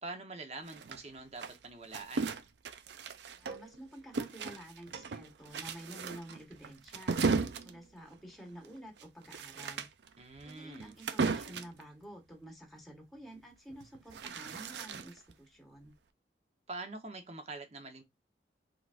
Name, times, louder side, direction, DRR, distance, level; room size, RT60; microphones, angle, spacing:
voice 1, 0.0-2.3 10.2-10.9 16.7-18.0, right 3 dB, 35° right, 1.0 m, -45 dB
sound 1, 0.7-3.8 4.1-11.8 13.7-15.3, right 4 dB, 75° right, 0.5 m, -36 dB
voice 2, 3.4-7.2 7.6-9.9 10.4-15.9, right 1 dB, ahead, 1.2 m, -50 dB
4.6 x 3.9 x 2.5 m
head